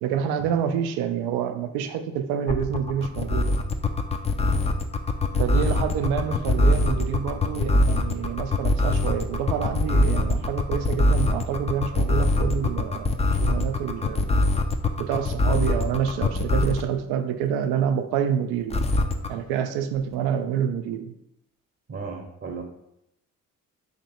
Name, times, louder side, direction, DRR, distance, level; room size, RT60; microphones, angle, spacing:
voice 1, 0.0-3.6 5.4-14.4 15.0-18.9 19.3-21.1, right 8 dB, 75° right, 8 dB, 0.5 m, -27 dB
sound 1, 2.5-16.9 18.7-19.3, left 2 dB, 15° left, 0.4 m, -22 dB
voice 2, 21.9-22.6, right 5 dB, 35° right, 2 dB, 0.8 m, -35 dB
2.9 x 2.9 x 4.2 m, 0.81 s
hypercardioid pair, 45°, 39 cm